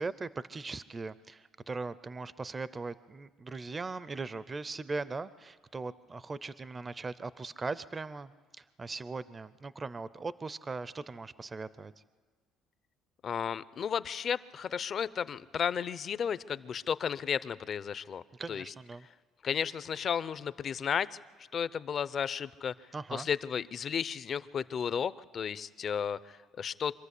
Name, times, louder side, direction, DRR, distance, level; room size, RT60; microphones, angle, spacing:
voice 1, 0.0-8.3 8.6-11.9 18.3-19.1 22.9-23.3, right 3 dB, 25° right, 16 dB, 0.5 m, -39 dB
voice 2, 13.2-18.7 19.4-21.1 21.5-22.7 23.1-27.0, left 7 dB, 45° left, 17 dB, 0.6 m, -33 dB
25.0 x 13.5 x 8.3 m, 1.5 s
cardioid pair, 115°, 0 cm